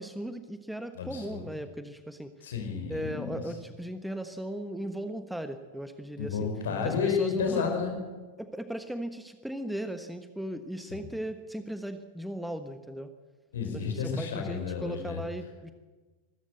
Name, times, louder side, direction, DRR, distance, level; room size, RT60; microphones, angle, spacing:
voice 1, 0.0-2.3 2.9-6.5 6.8-7.8 8.4-13.1 13.7-15.7, right 1 dB, ahead, 9 dB, 1.3 m, -37 dB
voice 2, 0.9-1.5 2.4-3.4 6.2-7.9 10.9-11.0 13.5-15.2, left 6 dB, 65° left, 5 dB, 5.1 m, -31 dB
24.5 x 14.0 x 8.2 m, 1.3 s
figure-of-eight pair, 90°, 0 cm